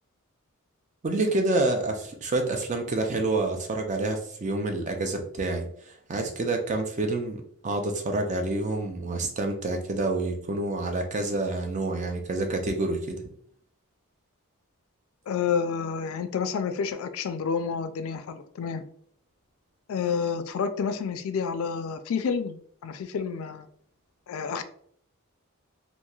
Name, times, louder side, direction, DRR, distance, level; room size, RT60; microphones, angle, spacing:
voice 1, 1.0-13.3, right 2 dB, 35° right, 4 dB, 0.4 m, -28 dB
voice 2, 15.3-18.8 19.9-23.7 24.3-24.6, left 6 dB, 70° left, 10 dB, 0.3 m, -29 dB
3.0 x 2.5 x 2.3 m, 0.63 s
head